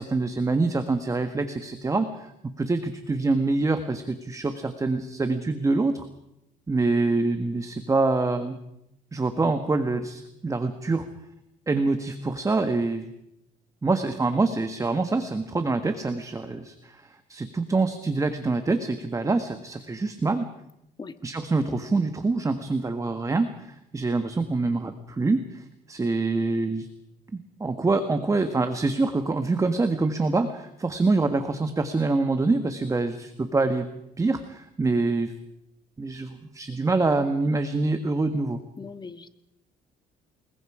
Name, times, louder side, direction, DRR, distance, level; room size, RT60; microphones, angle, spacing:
voice 1, 0.0-2.3 2.6-6.1 6.7-8.6 9.1-11.1 11.7-13.1 13.8-20.5 21.2-26.9 27.3-33.9 34.2-35.3 36.0-38.6, right 3 dB, 20° right, 8 dB, 1.5 m, -25 dB
voice 2, 38.8-39.3, left 4 dB, 25° left, 11 dB, 1.6 m, -39 dB
28.5 x 21.5 x 5.0 m, 0.83 s
cardioid pair, 110°, 17 cm